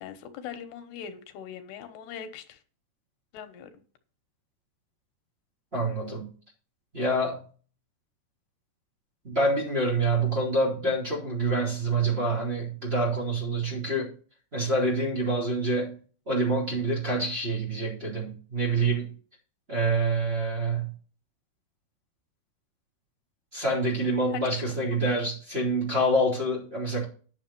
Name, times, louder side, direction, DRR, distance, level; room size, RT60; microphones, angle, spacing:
voice 1, 0.0-2.6 3.3-3.7 24.3-24.8, left 8 dB, 85° left, 3.2 m, -40 dB
voice 2, 5.7-6.3 6.9-7.5 9.2-14.1 14.5-16.0 16.3-19.1 19.7-20.9 23.5-27.0, right 2 dB, 15° right, 3.7 m, -26 dB
10.5 x 6.2 x 5.9 m
omnidirectional pair, 4.6 m